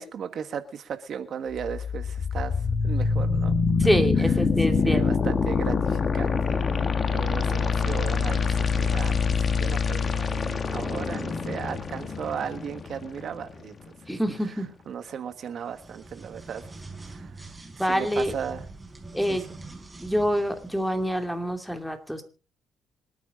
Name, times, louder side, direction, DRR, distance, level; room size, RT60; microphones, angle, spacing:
voice 1, 0.0-2.5 2.8-3.6 4.8-9.2 9.6-13.7 14.9-16.6 17.1-17.2 17.9-18.6 19.3-19.4, right 7 dB, 60° right, 9 dB, 1.5 m, -36 dB
sound 1, 1.5-13.5, left 5 dB, 40° left, 1.3 m, -25 dB
voice 2, 3.8-5.3 14.1-14.7 17.8-18.3 19.1-19.4 20.0-22.2, equal, ahead, 6 dB, 2.5 m, -26 dB
sound 2, 15.6-21.3, right 3 dB, 20° right, 4.4 m, -44 dB
26.5 x 9.3 x 3.8 m, 0.34 s
cardioid pair, 90°, 0 cm